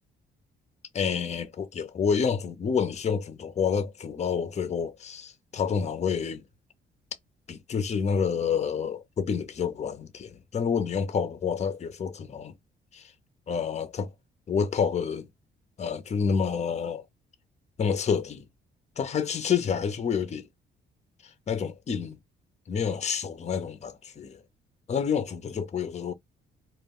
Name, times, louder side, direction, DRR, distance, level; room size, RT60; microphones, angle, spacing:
voice 1, 0.9-6.4 7.5-12.5 12.9-13.1 13.5-14.1 14.5-15.3 15.8-17.0 17.8-18.5 19.0-20.5 21.5-22.2 22.7-24.4 24.9-26.1, left 6 dB, 35° left, 0.6 m, -28 dB
2.3 x 2.2 x 3.4 m
cardioid pair, 90°, 20 cm